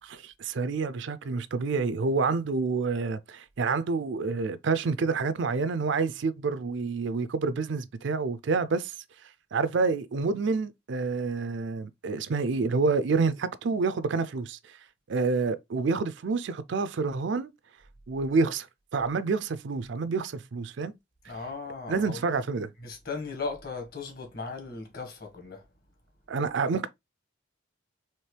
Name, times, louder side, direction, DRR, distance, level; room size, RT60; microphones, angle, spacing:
voice 1, 0.1-8.9 9.5-14.8 15.1-17.5 18.1-18.7 18.9-21.0 21.9-22.7 26.3-26.9, right 4 dB, 60° right, 0.4 m, -28 dB
voice 2, 21.2-22.3 22.8-25.6, left 4 dB, 45° left, 1.6 m, -37 dB
4.4 x 3.1 x 3.2 m
head